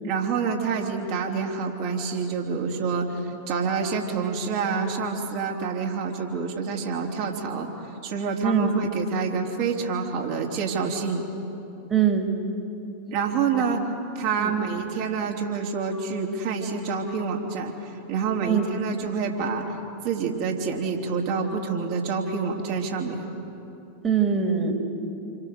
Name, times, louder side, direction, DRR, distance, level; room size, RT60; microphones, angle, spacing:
voice 1, 0.0-7.7 8.0-11.2 13.1-13.8 14.1-17.7 18.1-19.8 20.0-23.2, right 5 dB, 45° right, 0 dB, 3.3 m, -27 dB
voice 2, 11.9-12.3 13.5-13.6 14.4-14.6 18.5-18.6 24.0-24.7, right 7 dB, 20° right, 4 dB, 2.7 m, -22 dB
28.0 x 25.5 x 6.7 m, 3.0 s
figure-of-eight pair, 90°, 0 cm